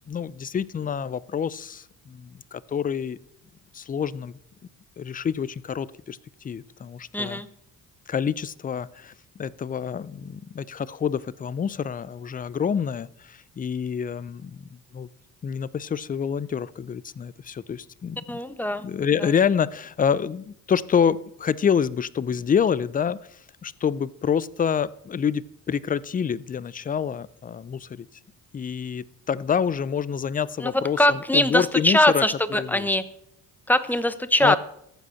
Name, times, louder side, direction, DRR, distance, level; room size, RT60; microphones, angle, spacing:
voice 1, 0.1-3.2 3.7-4.4 5.0-6.2 6.4-7.4 8.1-9.1 9.4-15.1 15.4-18.2 18.8-23.2 23.6-28.1 28.5-32.3 32.6-32.9 34.4-34.6, left 7 dB, 20° left, 20 dB, 0.4 m, -27 dB
voice 2, 7.1-7.5 18.3-18.9 30.6-30.7 31.0-33.0 33.7-34.6, left 1 dB, 5° left, 13 dB, 0.8 m, -21 dB
14.5 x 5.0 x 5.7 m, 0.73 s
supercardioid pair, 70°, 40 cm